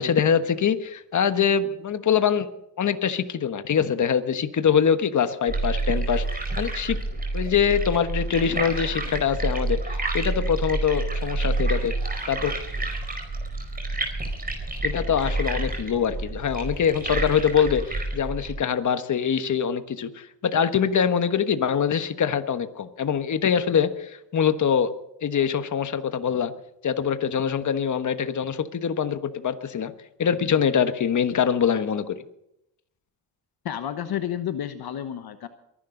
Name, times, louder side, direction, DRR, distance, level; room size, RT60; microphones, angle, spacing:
voice 1, 0.0-2.5 2.8-7.0 7.3-11.9 12.3-12.5 14.8-24.9 25.2-26.5 26.8-29.9 30.2-32.2, left 7 dB, 45° left, 10 dB, 1.3 m, -24 dB
sound 1, 5.5-18.5, right 2 dB, 20° right, 4.8 m, -28 dB
voice 2, 33.6-35.5, left 10 dB, 60° left, 9 dB, 1.2 m, -30 dB
23.0 x 11.5 x 3.9 m, 0.80 s
cardioid pair, 95°, 42 cm